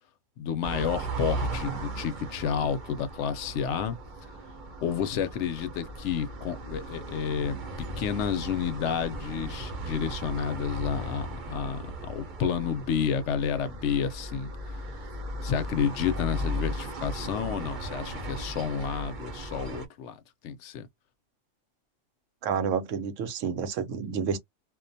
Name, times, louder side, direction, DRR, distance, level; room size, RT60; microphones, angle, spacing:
voice 1, 0.4-4.0 4.8-14.5 15.4-20.1 20.4-20.9, left 7 dB, 75° left, 0.9 m, -30 dB
sound 1, 0.6-19.9, right 1 dB, 45° right, 0.7 m, -37 dB
voice 2, 22.4-24.4, right 6 dB, 90° right, 1.0 m, -29 dB
2.4 x 2.2 x 2.6 m
omnidirectional pair, 1.3 m